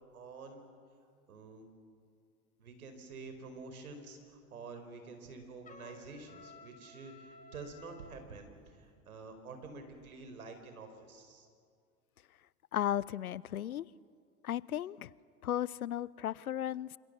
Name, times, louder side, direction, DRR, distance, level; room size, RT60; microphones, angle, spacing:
voice 1, 0.1-0.6 1.3-1.7 2.6-11.5, right 4 dB, 80° right, 7 dB, 5.0 m, -48 dB
Trumpet, 5.6-8.2, left 3 dB, 20° left, 3.6 m, -55 dB
voice 2, 12.7-13.9 14.4-15.1 15.4-17.0, left 11 dB, 80° left, 23 dB, 0.7 m, -35 dB
28.0 x 27.0 x 6.9 m, 2.2 s
hypercardioid pair, 90°, 43 cm